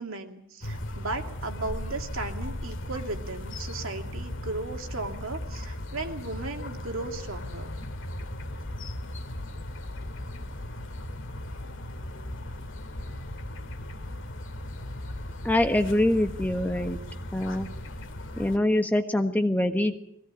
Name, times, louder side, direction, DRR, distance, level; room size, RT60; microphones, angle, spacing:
voice 1, 0.0-7.7, right 2 dB, 70° right, 3 dB, 2.7 m, -36 dB
sound 1, 0.6-18.6, left 1 dB, 60° left, 2.2 m, -37 dB
voice 2, 15.4-17.0 17.3-17.7 18.4-20.0, left 1 dB, 10° left, 6 dB, 1.3 m, -24 dB
22.0 x 17.5 x 8.5 m, 0.75 s
head